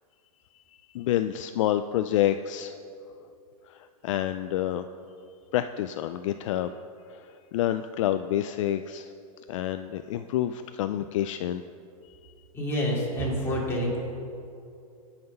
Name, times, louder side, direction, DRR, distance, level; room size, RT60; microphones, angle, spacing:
voice 1, 0.9-2.7 3.7-4.8 5.5-6.7 7.1-9.1 9.5-11.6, left 12 dB, 55° left, 10 dB, 0.4 m, -28 dB
voice 2, 12.5-14.0, equal, 10° left, -5 dB, 2.8 m, -27 dB
17.5 x 5.8 x 5.4 m, 2.6 s
supercardioid pair, 150°, 19 cm